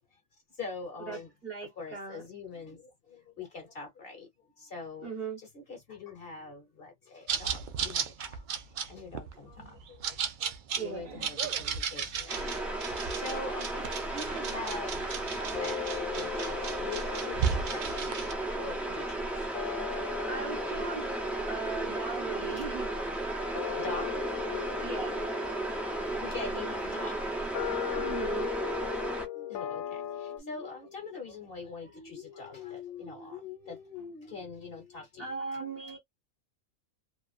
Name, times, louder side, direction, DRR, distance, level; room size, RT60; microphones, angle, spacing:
voice 1, 0.5-1.3 1.6-5.1 5.4-8.4 8.9-17.8 18.5-20.9 22.5-22.7 23.4-27.2 28.7-36.0, left 4 dB, 45° left, 1.1 m, -44 dB
voice 2, 1.1-2.2 5.0-5.4 9.6-9.7 10.7-11.3 20.2-21.2 21.5-22.9 24.8-25.2 28.0-28.5 35.2-36.0, right 5 dB, 50° right, 1.2 m, -38 dB
sound 1, 7.3-18.3, right 7 dB, 75° right, 0.4 m, -35 dB
sound 2, 12.3-29.3, right 2 dB, ahead, 0.5 m, -34 dB
sound 3, 13.4-14.8 15.5-30.4, left 11 dB, 85° left, 1.1 m, -40 dB
2.7 x 2.4 x 2.4 m
omnidirectional pair, 1.4 m